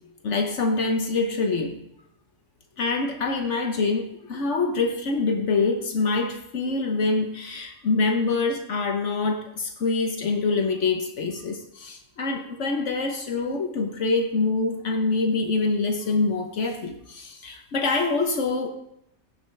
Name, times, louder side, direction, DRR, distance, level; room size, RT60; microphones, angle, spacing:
voice 1, 0.2-1.8 2.8-18.7, left 3 dB, 70° left, 4 dB, 1.3 m, -25 dB
15.5 x 5.7 x 3.3 m, 0.76 s
omnidirectional pair, 1.3 m